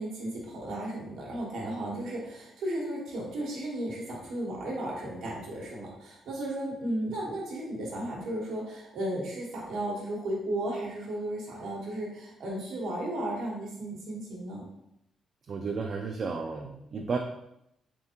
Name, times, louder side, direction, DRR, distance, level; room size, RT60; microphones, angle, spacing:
voice 1, 0.0-14.7, right 1 dB, 85° right, -3 dB, 1.1 m, -34 dB
voice 2, 15.5-17.2, right 4 dB, 40° right, 1 dB, 0.3 m, -33 dB
3.5 x 3.4 x 2.8 m, 0.80 s
cardioid pair, 170°, 0 cm